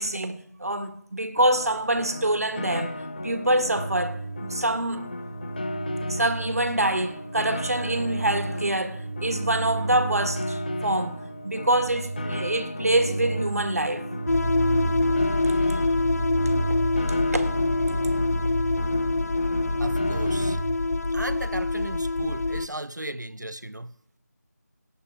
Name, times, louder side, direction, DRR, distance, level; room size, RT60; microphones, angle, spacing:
voice 1, 0.0-3.0 3.2-5.1 6.1-14.0 17.3-17.5, right 1 dB, 60° right, 1.6 m, -25 dB
Piano, 1.4-20.5, left 1 dB, 30° left, 0.9 m, -36 dB
sound 1, 3.8-20.8, right 3 dB, 45° right, 0.7 m, -34 dB
sound 2, 14.3-22.7, left 2 dB, 60° left, 0.4 m, -25 dB
voice 2, 19.8-20.6 21.1-23.9, right 1 dB, 90° right, 0.9 m, -35 dB
18.5 x 8.0 x 4.6 m
figure-of-eight pair, 165°, 9 cm